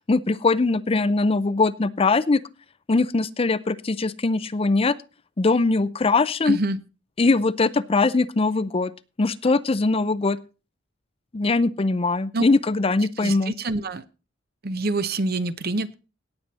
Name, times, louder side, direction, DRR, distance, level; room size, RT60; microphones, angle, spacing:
voice 1, 0.1-2.4 2.9-4.9 5.4-6.6 7.2-8.9 9.2-10.4 11.3-13.5, left 3 dB, 30° left, 16 dB, 0.5 m, -21 dB
voice 2, 6.5-6.8 12.3-12.4 13.2-14.0 14.6-15.9, right 2 dB, 50° right, 13 dB, 0.8 m, -26 dB
17.5 x 7.6 x 4.1 m, 0.33 s
head